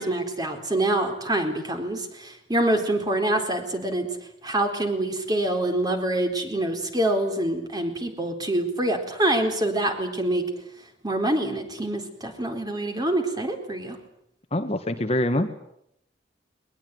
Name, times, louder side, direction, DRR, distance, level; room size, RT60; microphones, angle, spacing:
voice 1, 0.0-4.1 4.4-10.5 11.0-14.0, right 1 dB, 20° right, 5 dB, 4.0 m, -25 dB
voice 2, 14.5-15.5, left 1 dB, 35° left, 7 dB, 1.6 m, -24 dB
21.5 x 21.5 x 9.5 m, 0.75 s
head